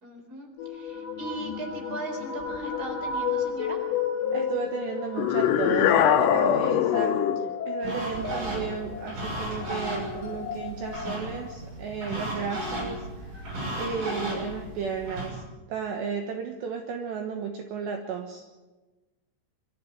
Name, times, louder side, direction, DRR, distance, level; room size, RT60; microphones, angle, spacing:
voice 1, 0.0-3.8, right 2 dB, 20° right, 3 dB, 3.8 m, -38 dB
sound 1, 0.6-11.6, left 7 dB, 65° left, 3.8 m, -32 dB
voice 2, 4.3-7.2 7.7-15.4 15.7-18.4, right 6 dB, 70° right, 4 dB, 3.1 m, -34 dB
sound 2, 5.2-7.5, left 9 dB, 85° left, 3.9 m, -22 dB
sound 3, 7.8-15.3, right 1 dB, 40° right, 8.2 m, -35 dB
26.0 x 13.5 x 9.3 m, 1.2 s
omnidirectional pair, 6.0 m